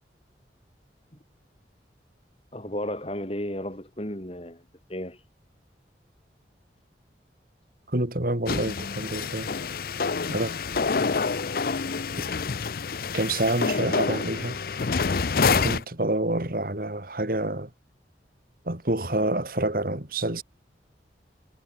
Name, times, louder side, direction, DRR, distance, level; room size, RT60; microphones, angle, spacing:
voice 1, 2.5-5.2, left 1 dB, 35° left, 4.7 m, -34 dB
voice 2, 7.9-9.5 10.3-10.5 12.2-12.3 13.1-14.6 15.5-17.7 18.7-20.4, right 1 dB, 55° right, 2.6 m, -27 dB
sound 1, 8.5-15.8, left 5 dB, 55° left, 0.6 m, -27 dB
head